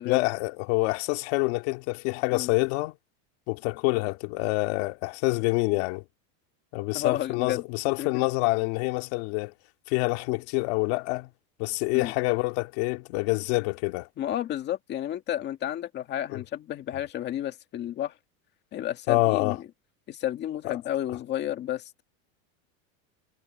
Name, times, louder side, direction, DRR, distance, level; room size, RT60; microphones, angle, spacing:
voice 1, 0.0-2.9 3.5-6.0 6.7-9.5 9.9-11.3 11.6-14.1 16.3-16.4 19.1-19.6 20.6-20.8, left 24 dB, 50° left, 2.4 m, -26 dB
voice 2, 6.9-7.6 8.0-8.1 11.9-12.1 14.2-18.1 18.7-19.6 20.1-22.0, left 12 dB, 25° left, 2.0 m, -31 dB
supercardioid pair, 175°, 42 cm